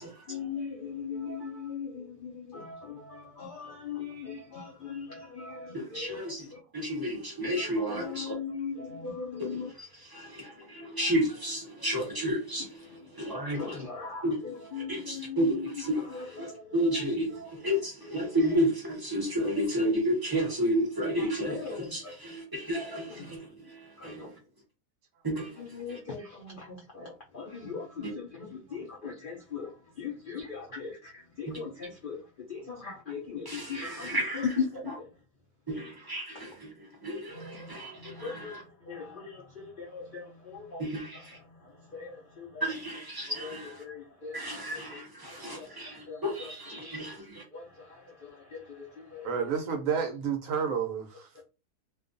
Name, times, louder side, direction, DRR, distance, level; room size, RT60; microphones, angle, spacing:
voice 1, 0.3-6.2 7.6-9.7 13.5-15.7 16.1-16.6 21.5-22.1 23.2-23.3 24.0-24.3 25.6-29.7 30.0-31.1 31.4-34.4 37.3-38.5 38.9-40.8 41.9-42.6 43.4-43.5 43.8-44.6 45.5-45.7 46.1-46.5 46.8-47.0 47.5-47.9 48.5-48.6 49.1-49.3, left 5 dB, 70° left, 0.5 m, -40 dB
voice 2, 5.7-6.5 6.7-8.3 9.4-9.5 9.8-13.9 14.2-24.4 25.2-26.0 28.0-28.1 31.5-31.6 33.4-35.0 35.7-38.6 40.8-41.4 42.6-43.8 44.3-47.4, equal, 25° right, 0.5 m, -32 dB
voice 3, 49.2-51.3, right 6 dB, 70° right, 0.8 m, -31 dB
2.5 x 2.2 x 2.5 m
omnidirectional pair, 1.7 m